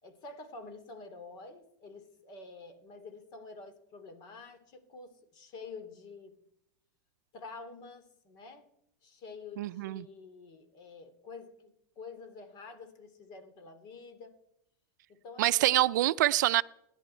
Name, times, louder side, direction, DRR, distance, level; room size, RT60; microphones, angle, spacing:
voice 1, 0.0-6.3 7.3-8.6 9.0-14.3 15.1-15.8, left 4 dB, 45° left, 2.8 m, -48 dB
voice 2, 9.6-10.1 15.4-16.6, right 15 dB, 80° right, 0.5 m, -26 dB
29.5 x 11.0 x 4.4 m
supercardioid pair, 140°, 10 cm